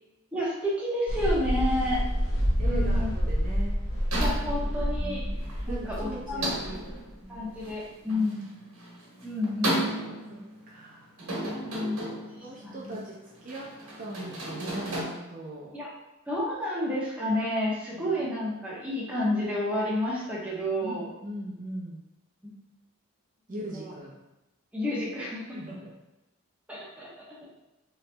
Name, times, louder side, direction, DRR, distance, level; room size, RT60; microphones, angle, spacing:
voice 1, 0.3-2.0 2.6-3.1 4.2-5.2 5.7-6.5 7.3-8.4 9.2-9.9 11.6-12.1 12.6-12.9 15.7-15.9 16.3-21.1 22.4-22.5 23.7-23.9 24.7-25.6 26.7-27.5, left 1 dB, 5° right, -7 dB, 0.8 m, -30 dB
sound 1, 1.1-7.7, equal, 70° left, 1.0 m, -28 dB
voice 2, 2.6-3.8 5.7-6.8 8.1-8.2 10.3-11.1 12.4-13.2 13.4-13.7 14.0-15.7 17.9-18.2 20.8-22.0 23.5-24.2 25.5-25.9, right 1 dB, 40° right, -4 dB, 0.6 m, -39 dB
sound 2, 4.1-15.0, right 1 dB, 75° right, 1.1 m, -35 dB
3.1 x 2.9 x 3.3 m, 0.97 s
head